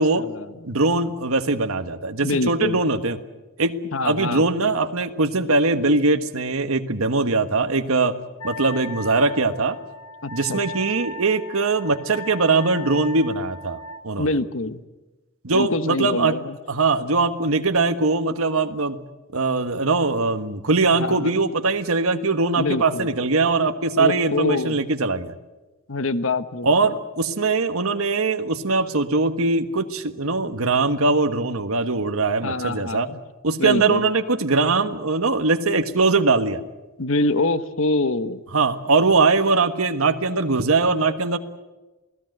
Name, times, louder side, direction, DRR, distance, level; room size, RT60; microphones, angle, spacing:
voice 1, 0.0-0.5 2.2-2.8 3.9-4.4 10.2-10.6 14.2-14.8 15.5-16.6 20.9-21.4 22.6-23.1 24.0-24.8 25.9-26.7 32.4-33.2 33.6-34.1 37.0-38.4, left 2 dB, 65° left, 12 dB, 1.2 m, -25 dB
voice 2, 0.6-3.2 3.6-3.8 4.0-8.1 8.4-9.8 10.3-13.8 14.0-14.3 15.4-16.4 16.7-19.0 19.3-25.3 26.6-33.1 33.4-36.6 38.5-41.4, right 3 dB, 85° right, 8 dB, 1.4 m, -21 dB
Wind instrument woodwind instrument, 8.4-14.0, equal, 85° left, 1.4 m, -38 dB
28.5 x 18.5 x 8.0 m, 1.1 s
head